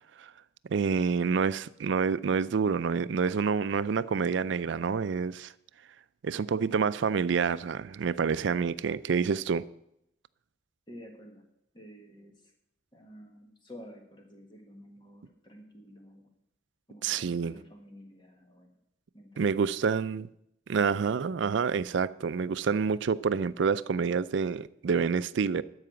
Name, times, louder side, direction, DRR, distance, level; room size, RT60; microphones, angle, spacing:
voice 1, 0.7-5.5 6.2-9.7 17.0-17.6 19.4-20.3 20.7-25.6, right 5 dB, 70° right, 0.4 m, -28 dB
voice 2, 6.3-6.8 10.9-11.4 11.7-12.3 12.9-16.3 16.9-18.7 19.1-19.9, equal, 25° left, 1.5 m, -51 dB
12.5 x 4.9 x 7.8 m
head